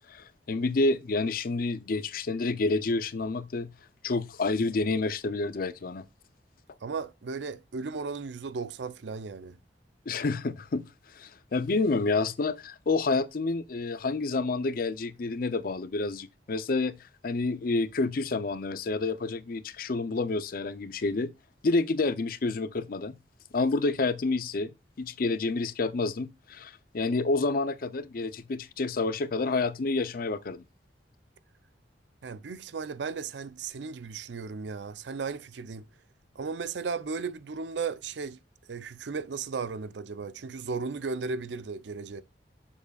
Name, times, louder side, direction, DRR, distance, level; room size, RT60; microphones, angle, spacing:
voice 1, 0.1-3.7 4.0-6.0 10.1-10.8 11.1-16.9 17.2-21.3 21.6-23.2 23.5-24.7 25.0-30.6, left 3 dB, 55° left, 0.5 m, -29 dB
voice 2, 6.8-9.6 32.2-35.9 36.4-38.4 38.7-42.2, right 5 dB, 85° right, 0.5 m, -35 dB
7.1 x 6.8 x 2.3 m
head